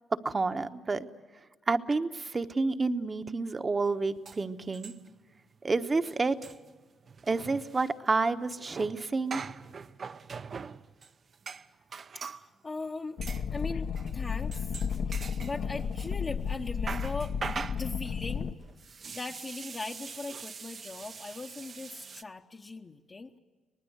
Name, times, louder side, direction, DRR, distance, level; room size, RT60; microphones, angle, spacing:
voice 1, 0.2-1.1 1.7-4.9 5.6-6.5 7.3-9.4, right 3 dB, 30° right, 9 dB, 1.1 m, -29 dB
sound 1, 3.9-4.0 4.2-5.3 5.5-5.7 5.9-12.5 13.2-13.5 13.9-14.2 14.5-16.1 16.5-22.2, right 5 dB, 45° right, 0.7 m, -43 dB
voice 2, 12.1-13.2 13.5-14.7 15.1-18.5 19.1-23.4, left 3 dB, 30° left, 1 dB, 1.0 m, -39 dB
sound 2, 13.2-18.5, left 6 dB, 65° left, 1.0 m, -33 dB
24.5 x 19.5 x 8.0 m, 1.3 s
cardioid pair, 90°, 0 cm